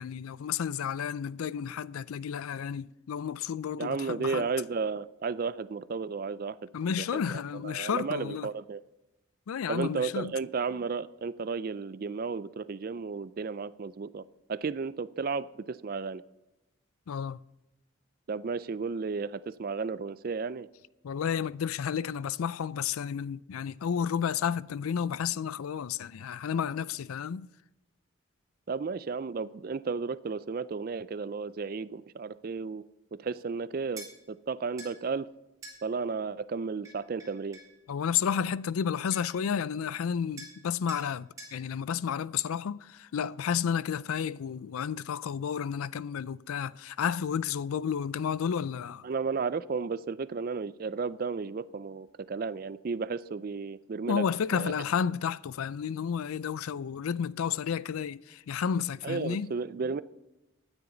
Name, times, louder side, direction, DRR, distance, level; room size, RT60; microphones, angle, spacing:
voice 1, 0.0-4.5 6.7-8.5 9.5-10.3 17.1-17.4 21.0-27.5 37.9-49.1 54.1-59.5, left 7 dB, 90° left, 0.4 m, -31 dB
voice 2, 3.8-6.6 7.0-8.8 9.7-16.2 18.3-20.7 28.7-32.8 33.1-35.3 35.8-37.6 49.0-54.2 54.5-54.7 59.0-60.0, right 5 dB, 45° right, 0.4 m, -33 dB
sound 1, 34.0-34.1 34.8-34.9 35.6-35.8 36.8-37.7 38.8-38.9 39.1-39.4 40.4-40.6 40.9-41.1 41.4-41.6, right 2 dB, 15° right, 3.7 m, -46 dB
16.0 x 9.8 x 3.9 m
head